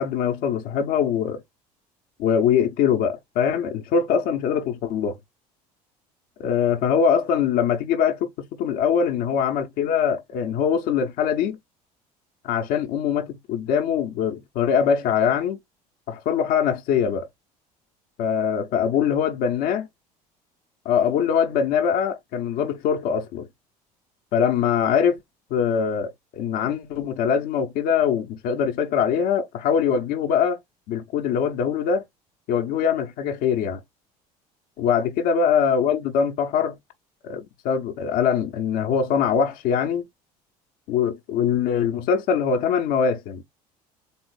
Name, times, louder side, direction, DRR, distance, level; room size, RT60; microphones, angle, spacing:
voice 1, 0.0-1.4 2.2-5.2 6.4-11.6 12.4-15.6 16.1-17.3 18.2-19.8 20.8-23.5 24.3-25.2 25.5-30.6 30.9-32.0 32.5-33.8 34.8-36.8 37.2-40.1 40.9-43.4, left 7 dB, 50° left, 0.7 m, -22 dB
3.8 x 2.7 x 3.1 m
figure-of-eight pair, 60°, 20 cm